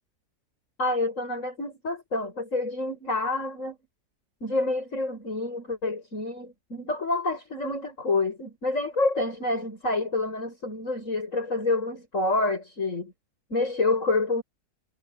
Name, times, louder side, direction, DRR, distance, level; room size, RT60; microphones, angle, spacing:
voice 1, 0.8-3.8 4.4-13.1 13.5-14.4, left 2 dB, 55° left, 8.5 m, -28 dB
omnidirectional pair, 1.6 m